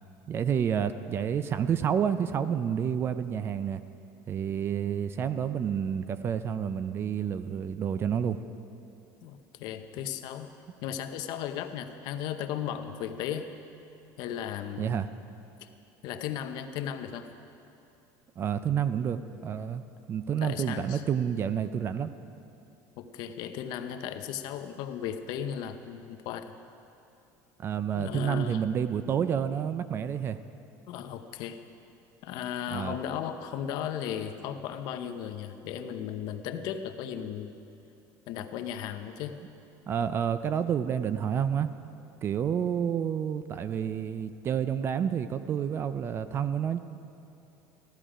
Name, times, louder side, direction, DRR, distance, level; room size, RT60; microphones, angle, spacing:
voice 1, 0.3-3.8 4.3-8.4 14.8-15.1 18.4-19.8 20.1-22.1 27.6-30.4 32.7-33.0 39.9-41.7 42.2-46.8, right 8 dB, 30° right, 12 dB, 0.4 m, -29 dB
voice 2, 9.2-10.5 10.8-13.5 14.2-15.0 15.6-15.7 16.0-17.3 20.4-21.0 23.0-26.5 28.0-28.6 30.9-31.6 32.2-37.6 38.3-39.3, left 9 dB, 60° left, 8 dB, 0.8 m, -36 dB
14.5 x 13.0 x 5.0 m, 2.8 s
cardioid pair, 150°, 8 cm